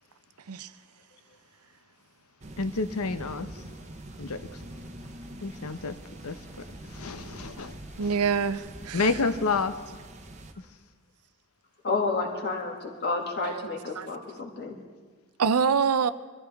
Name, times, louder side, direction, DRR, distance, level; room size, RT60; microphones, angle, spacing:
sound 1, 2.4-10.5, right 1 dB, 30° right, 0.9 m, -44 dB
voice 1, 2.6-3.5 4.2-4.5 5.4-6.0 6.2-6.7 6.9-8.1 8.9-9.8, left 4 dB, 80° left, 0.8 m, -29 dB
voice 2, 8.0-9.1 13.4-13.5 14.0-14.1 15.4-16.1, right 6 dB, 85° right, 0.6 m, -25 dB
voice 3, 11.8-14.8, left 3 dB, 50° left, 2.3 m, -30 dB
23.5 x 14.0 x 3.6 m
head